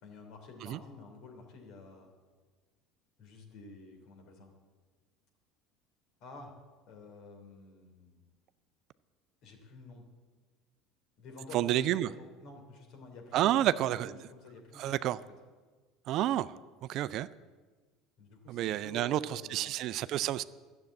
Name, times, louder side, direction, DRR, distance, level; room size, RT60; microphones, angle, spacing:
voice 1, 0.0-2.1 3.2-4.5 6.2-6.6 6.9-8.2 9.4-10.1 11.2-15.2 18.2-19.8, left 3 dB, 60° left, 2 dB, 3.1 m, -50 dB
voice 2, 11.5-12.1 13.3-14.1 14.8-15.2 16.1-16.6 16.9-17.3 18.5-20.4, right 13 dB, 55° right, 15 dB, 0.4 m, -30 dB
12.0 x 7.8 x 8.4 m, 1.4 s
hypercardioid pair, 80°, 0 cm